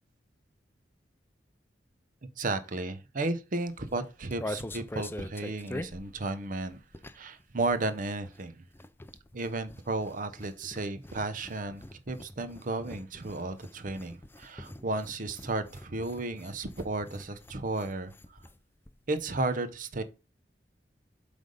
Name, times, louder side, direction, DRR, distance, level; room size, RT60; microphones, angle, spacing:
voice 1, 2.4-6.8 7.1-8.6 9.3-18.1 19.1-20.0, right 2 dB, 50° right, 0.8 m, -33 dB
sound 1, 3.7-7.4 7.7-18.6 18.9-19.0 19.2-19.5, left 1 dB, 15° left, 0.4 m, -44 dB
7.8 x 3.4 x 5.3 m
head